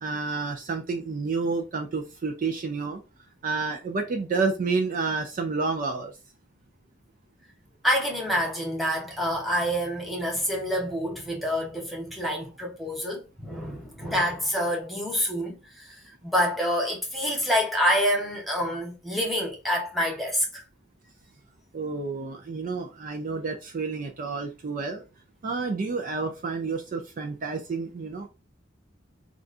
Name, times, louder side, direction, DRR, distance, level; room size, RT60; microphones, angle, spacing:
voice 1, 0.0-3.0 3.4-6.1 21.7-25.0 25.4-28.3, right 4 dB, 40° right, 0.4 m, -29 dB
voice 2, 7.8-20.6, equal, ahead, 1.0 m, -27 dB
3.7 x 2.3 x 2.5 m
head